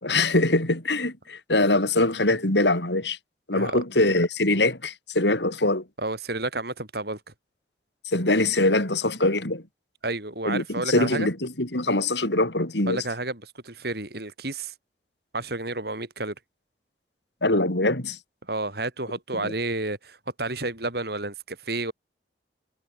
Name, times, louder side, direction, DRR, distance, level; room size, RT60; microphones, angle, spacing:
voice 1, 0.0-3.2 3.5-5.8 8.1-9.6 10.4-13.0 17.4-18.2 19.4-19.5, left 2 dB, 80° left, 5.1 m, -23 dB
voice 2, 6.0-7.2 10.0-11.3 12.9-14.7 15.3-16.3 18.5-21.9, right 2 dB, 60° right, 6.7 m, -31 dB
head